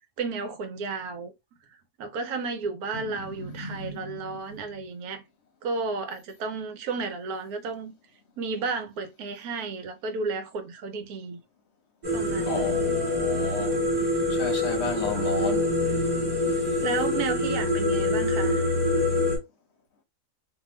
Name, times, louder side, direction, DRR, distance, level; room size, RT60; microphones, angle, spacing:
voice 1, 0.2-1.3 2.0-5.2 5.6-7.9 8.4-11.4 12.1-12.8 16.8-18.7, right 4 dB, 75° right, 1.2 m, -32 dB
voice 2, 2.9-4.8 12.5-13.8 14.1-15.8, left 3 dB, 55° left, 0.8 m, -34 dB
sound 1, 12.0-19.4, left 2 dB, 20° right, 0.9 m, -25 dB
2.8 x 2.3 x 3.0 m
omnidirectional pair, 1.6 m